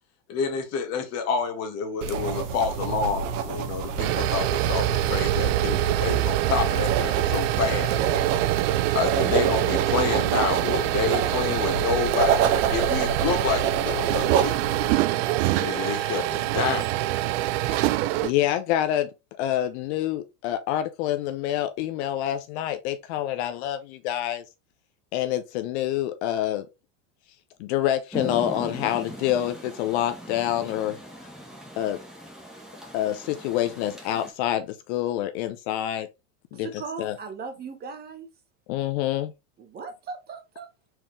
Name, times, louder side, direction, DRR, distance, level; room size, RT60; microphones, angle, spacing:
voice 1, 0.3-8.0 8.9-14.6 15.5-16.9, left 6 dB, 40° left, 1.4 m, -28 dB
sound 1, 2.0-14.9, right 6 dB, 75° right, 1.1 m, -28 dB
sound 2, 3.8-18.3, right 15 dB, 55° right, 0.5 m, -25 dB
voice 2, 17.7-19.1 19.4-24.4 25.1-26.7 27.6-31.0 31.8-32.0 32.9-36.1 36.5-36.7 37.0-37.1 38.7-39.3, left 12 dB, 60° left, 0.7 m, -27 dB
Rain, 28.1-34.3, equal, ahead, 1.6 m, -40 dB
voice 3, 36.5-38.3 39.6-40.7, right 5 dB, 25° right, 1.0 m, -38 dB
4.6 x 3.6 x 3.2 m
supercardioid pair, 135°, 39 cm